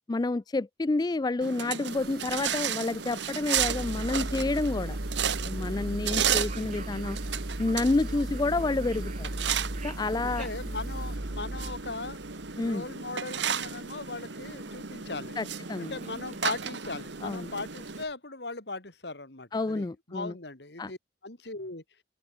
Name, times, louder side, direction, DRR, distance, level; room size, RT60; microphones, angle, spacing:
voice 1, 0.1-5.0 5.4-7.2 7.6-9.3 9.8-10.5 12.6-12.8 15.4-16.0 17.2-17.5 19.5-20.4 20.8-20.9, left 2 dB, 25° left, 0.4 m, -29 dB
sound 1, 1.4-18.0, right 7 dB, 85° right, 1.9 m, -34 dB
sound 2, 1.9-11.2, right 5 dB, 55° right, 4.3 m, -52 dB
sound 3, 3.6-18.0, right 1 dB, 40° right, 1.2 m, -37 dB
voice 2, 10.2-12.2 12.6-15.4 15.8-21.0 21.2-21.8, left 3 dB, 65° left, 2.8 m, -38 dB
open air
head